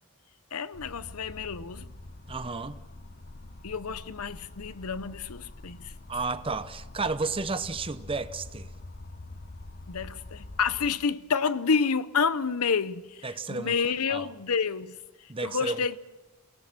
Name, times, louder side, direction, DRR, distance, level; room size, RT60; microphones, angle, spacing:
voice 1, 0.5-1.9 3.6-5.9 9.9-16.0, left 5 dB, 85° left, 0.8 m, -29 dB
sound 1, 0.7-10.9, left 2 dB, 45° left, 1.0 m, -45 dB
voice 2, 2.3-2.8 6.1-8.7 13.2-13.7 14.1-14.3 15.3-15.9, right 3 dB, 25° right, 0.8 m, -32 dB
27.5 x 18.5 x 6.0 m
head